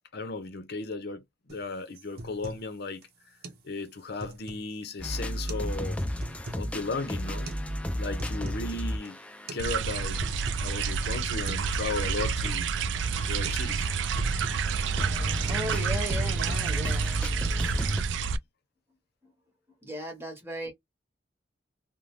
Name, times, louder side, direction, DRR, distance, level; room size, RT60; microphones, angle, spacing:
voice 1, 0.1-3.0 3.6-6.0 6.6-7.5 8.0-9.2 9.5-10.2 10.6-12.7 13.3-13.9 15.2-15.4 15.8-15.9, left 3 dB, 60° left, 0.6 m, -35 dB
sound 1, 1.5-1.6 2.0-2.7 3.0-3.1 3.4-3.6 4.0-4.8 5.3-5.7 6.0-6.7 7.5-7.6 8.0-8.7 9.0-9.1 9.5-9.7 10.0-10.7 11.0-11.1 11.5-11.7 12.0-12.7 13.0-13.2 13.4-13.6 13.9-14.6 15.0-15.2 15.5-15.7 16.0-16.8 17.1-17.5, right 1 dB, 55° right, 0.7 m, -41 dB
sound 2, 5.0-11.2 11.6-18.0, equal, 5° left, 0.3 m, -35 dB
sound 3, 9.6-18.4, right 5 dB, 75° right, 0.3 m, -29 dB
voice 2, 15.5-17.0 19.8-20.7, equal, 15° right, 1.1 m, -36 dB
2.6 x 2.1 x 3.2 m
head